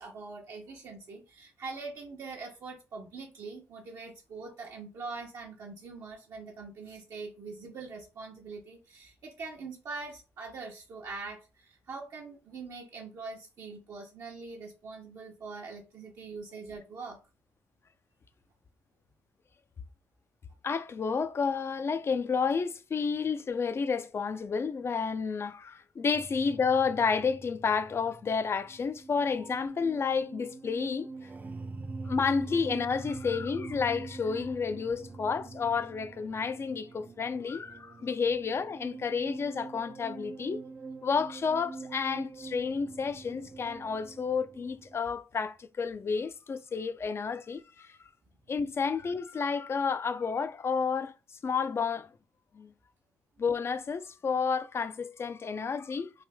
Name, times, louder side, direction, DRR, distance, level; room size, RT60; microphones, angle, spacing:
voice 1, 0.0-17.2, right 4 dB, 65° right, 0.8 m, -43 dB
voice 2, 20.6-31.1 32.0-40.6 41.0-48.0 48.5-51.1 51.4-52.1 52.5-52.7 53.4-56.1, left 5 dB, 40° left, 0.5 m, -30 dB
sound 1, 26.1-45.0, right 3 dB, 30° right, 0.4 m, -44 dB
3.4 x 2.5 x 3.4 m
supercardioid pair, 65°, 6 cm